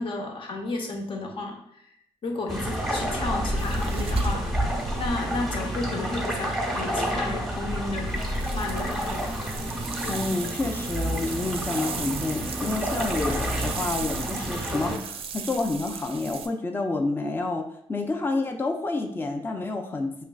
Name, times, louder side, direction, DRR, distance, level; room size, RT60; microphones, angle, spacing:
voice 1, 0.0-1.9 2.2-8.3 8.5-9.3, left 3 dB, 55° left, 1 dB, 0.9 m, -33 dB
sound 1, 2.5-15.0, equal, ahead, 1.0 m, -29 dB
sound 2, 3.6-5.9 8.1-16.5, right 6 dB, 60° right, 0.4 m, -37 dB
voice 2, 10.1-20.2, left 3 dB, 20° left, 4 dB, 0.5 m, -29 dB
4.9 x 3.2 x 2.4 m, 0.72 s
cardioid pair, 95°, 11 cm